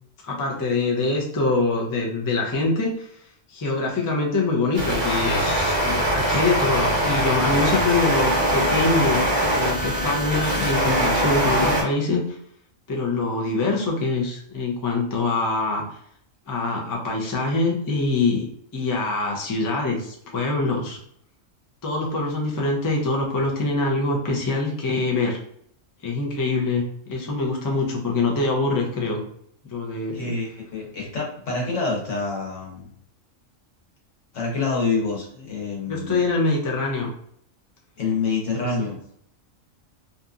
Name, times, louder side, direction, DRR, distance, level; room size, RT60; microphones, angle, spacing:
voice 1, 0.2-3.1 3.5-9.3 9.5-12.4 12.9-15.8 16.5-18.5 18.7-21.0 21.8-25.4 26.0-29.2 29.7-30.4 35.9-37.1, left 3 dB, 35° left, -1 dB, 0.3 m, -24 dB
sound 1, 4.7-11.8, right 1 dB, 35° right, 0.5 m, -22 dB
voice 2, 30.1-32.9 34.3-36.2 38.0-39.0, left 4 dB, 75° left, -2 dB, 1.3 m, -27 dB
2.7 x 2.5 x 2.4 m, 0.68 s
omnidirectional pair, 1.3 m